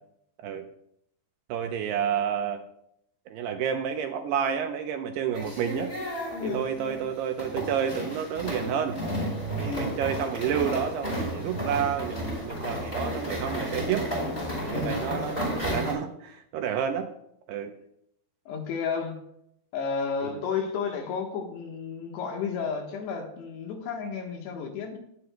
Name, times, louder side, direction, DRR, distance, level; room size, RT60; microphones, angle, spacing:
voice 1, 1.5-2.6 3.3-5.9 6.5-9.0 9.6-14.1 14.6-17.1 17.5-17.7 20.2-20.4, right 8 dB, 80° right, 5 dB, 2.6 m, -30 dB
sound 1, 5.3-15.9, equal, 15° left, 4.3 m, -32 dB
voice 2, 6.4-6.7 9.6-10.0 14.7-15.0 18.5-19.2 19.7-25.0, left 5 dB, 70° left, 2 dB, 3.3 m, -32 dB
20.0 x 9.5 x 2.3 m, 0.74 s
omnidirectional pair, 5.2 m